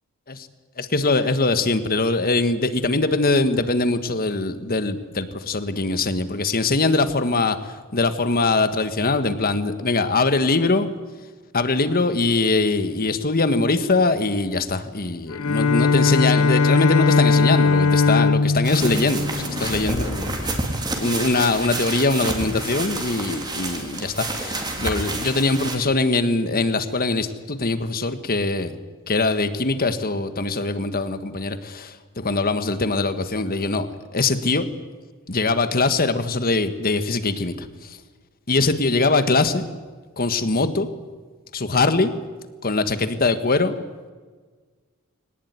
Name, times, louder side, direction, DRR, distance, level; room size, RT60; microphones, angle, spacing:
voice 1, 0.8-10.9 11.5-20.5 21.0-28.8 29.1-33.9 34.1-34.7 35.3-38.0 38.5-39.7 40.2-40.9 41.5-42.1 42.6-43.8, left 3 dB, 45° left, 10 dB, 1.5 m, -22 dB
Bowed string instrument, 15.3-20.3, left 4 dB, 70° left, 0.8 m, -19 dB
sound 1, 18.6-25.8, right 2 dB, 20° right, 3.5 m, -29 dB
22.5 x 19.5 x 9.6 m, 1.4 s
head